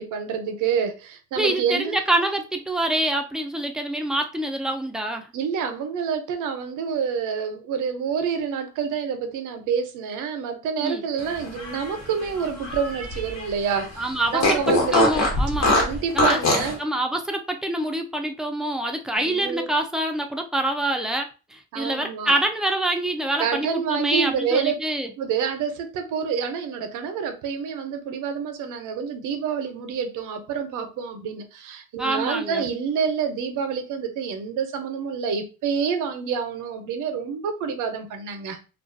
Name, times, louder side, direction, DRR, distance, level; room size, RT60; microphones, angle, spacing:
voice 1, 0.0-2.0 5.3-15.0 15.7-16.8 19.1-19.7 21.7-22.4 23.4-24.8 25.2-38.6, right 6 dB, 85° right, 0.6 m, -28 dB
voice 2, 1.4-5.3 10.8-11.0 14.0-14.6 14.9-15.7 16.1-16.4 16.8-25.1 32.0-32.7, right 1 dB, ahead, 0.4 m, -26 dB
Fart, 11.4-13.5 13.8-13.9 14.4-16.7, left 1 dB, 60° left, 1.1 m, -22 dB
2.3 x 2.2 x 2.5 m
cardioid pair, 90°, 30 cm